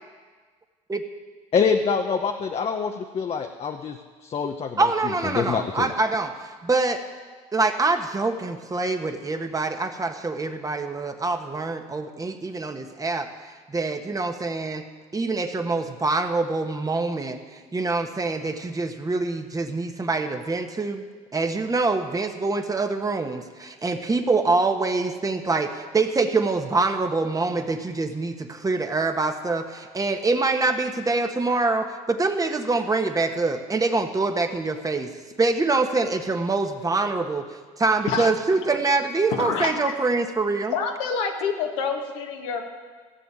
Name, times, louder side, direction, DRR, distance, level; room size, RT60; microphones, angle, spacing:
voice 1, 1.5-4.0 4.2-5.9, left 6 dB, 40° left, 4 dB, 1.0 m, -25 dB
voice 2, 4.8-7.0 7.5-13.3 13.7-14.8 15.1-17.4 17.7-21.0 21.3-35.1 35.4-37.5 37.8-40.8, right 3 dB, 20° right, 6 dB, 1.4 m, -25 dB
voice 3, 39.3-39.7 40.7-42.7, left 6 dB, 80° left, 2 dB, 1.8 m, -27 dB
15.5 x 6.9 x 9.1 m, 1.5 s
hypercardioid pair, 70°, 16 cm